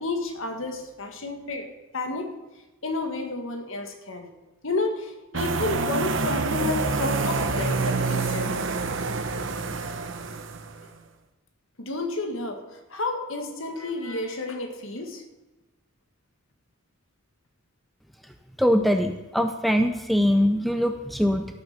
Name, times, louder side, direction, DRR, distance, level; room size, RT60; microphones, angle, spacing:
voice 1, 0.0-2.3 2.8-4.3 4.6-8.8 11.8-15.2, left 3 dB, 70° left, 5 dB, 1.8 m, -31 dB
sound 1, 5.3-10.9, right 3 dB, 60° right, 0.9 m, -27 dB
voice 2, 18.6-21.5, equal, ahead, 6 dB, 0.6 m, -22 dB
13.5 x 6.7 x 6.6 m, 1.1 s
head